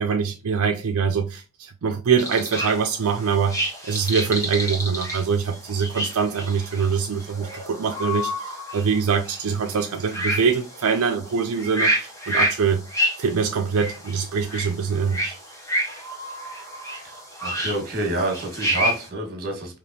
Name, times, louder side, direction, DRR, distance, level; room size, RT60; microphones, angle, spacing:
voice 1, 0.0-12.8 13.2-15.4, right 6 dB, 70° right, 0.5 m, -24 dB
sound 1, 2.2-19.1, equal, 15° left, 1.2 m, -29 dB
voice 2, 17.0-19.8, right 2 dB, 45° right, 1.6 m, -28 dB
5.0 x 2.9 x 2.8 m
head